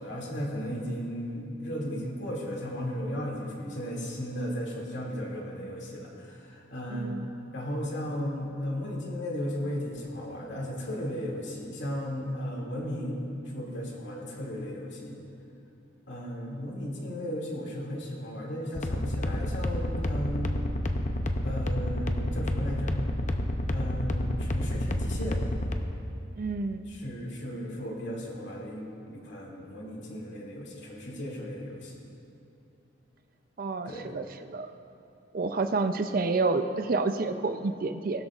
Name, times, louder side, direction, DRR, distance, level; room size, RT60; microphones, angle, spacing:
voice 1, 0.0-7.1 7.5-13.2 13.5-15.2 16.1-20.6 21.4-23.0 23.7-25.4 26.9-32.0 33.8-34.1, equal, 65° left, -2 dB, 2.4 m, -35 dB
voice 2, 6.9-7.3 26.3-26.9 33.6-34.7 35.3-38.3, right 3 dB, 50° right, 8 dB, 0.5 m, -29 dB
sound 1, 18.8-25.7, left 1 dB, 40° left, 0.6 m, -29 dB
19.0 x 12.5 x 2.5 m, 2.8 s
head